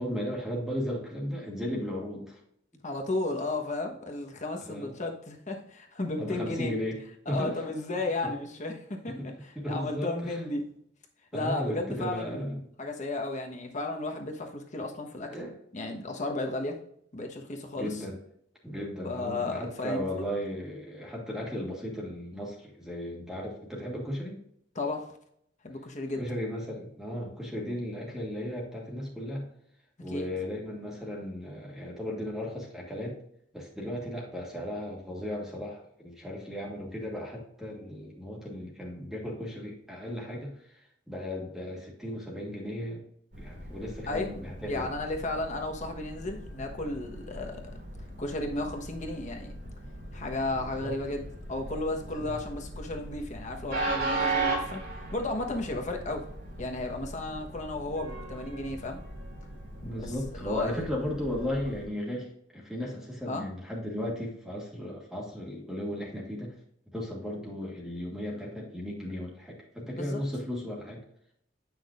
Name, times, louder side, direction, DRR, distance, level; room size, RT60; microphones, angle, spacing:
voice 1, 0.0-2.4 4.6-5.0 6.2-7.0 7.3-7.6 8.2-8.3 9.0-10.4 11.3-12.6 15.3-15.6 17.7-18.2 18.6-24.4 26.2-29.5 30.0-33.2 33.5-40.8 41.1-43.0 43.4-44.9 50.5-51.0 52.0-52.4 59.8-66.5 66.9-71.0, equal, ahead, -3 dB, 1.6 m, -35 dB
voice 2, 2.8-6.7 7.3-10.7 11.3-15.4 15.7-16.8 17.1-18.0 19.0-20.2 24.7-25.1 25.6-26.2 30.1-30.2 44.1-44.3 44.7-47.6 48.2-49.5 50.1-54.9 55.1-56.3 56.6-59.0 59.8-60.8 63.3-63.5 69.9-70.2, left 2 dB, 40° left, 3 dB, 1.2 m, -34 dB
Train, 43.3-61.9, right 3 dB, 60° right, 2.8 m, -38 dB
8.9 x 6.1 x 2.5 m, 0.70 s
head